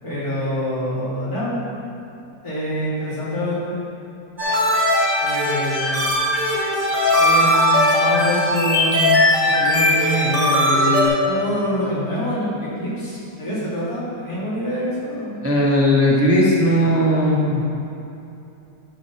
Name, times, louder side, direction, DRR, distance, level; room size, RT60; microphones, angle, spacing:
voice 1, 0.0-1.6 2.4-3.8 5.2-6.1 7.2-9.1 9.4-15.3, equal, 55° left, -9 dB, 3.2 m, -25 dB
sound 1, 4.4-11.1, left 1 dB, 30° right, 1.9 m, -18 dB
voice 2, 15.4-17.6, equal, 10° right, -5 dB, 0.9 m, -17 dB
12.0 x 5.1 x 5.7 m, 2.8 s
omnidirectional pair, 1.9 m